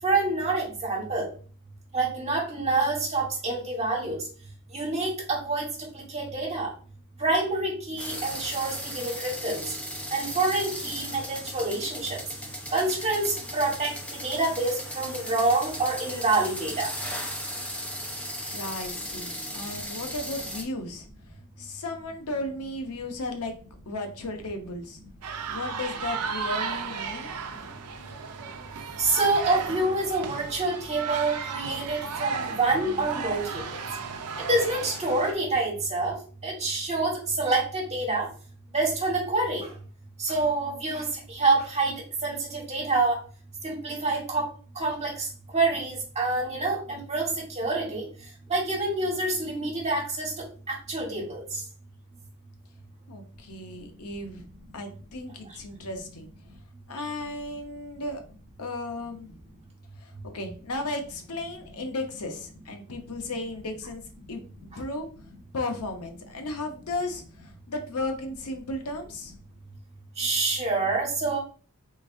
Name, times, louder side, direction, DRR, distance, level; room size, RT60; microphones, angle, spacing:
voice 1, 0.0-1.3 1.9-4.2 4.7-5.7 5.9-6.7 7.2-9.6 10.1-12.2 12.7-13.9 14.2-16.9 29.0-33.6 34.4-36.2 36.4-38.3 38.7-39.7 40.2-43.2 43.6-44.5 44.7-48.0 48.5-51.6 64.7-64.8 70.2-71.4, right 3 dB, 30° right, -3 dB, 1.6 m, -27 dB
sound 1, 8.0-20.6, equal, 5° left, 0.8 m, -37 dB
voice 2, 18.5-21.1 21.6-23.5 23.9-25.0 25.5-27.3 53.1-54.4 54.7-56.3 56.9-58.2 58.6-59.3 60.0-64.0 64.3-65.1 65.5-69.3, left 2 dB, 80° left, 5 dB, 0.8 m, -35 dB
Colombian Basketball School Court Quad, 25.2-35.3, right 5 dB, 85° right, 0.5 m, -34 dB
3.8 x 3.4 x 2.6 m, 0.39 s
head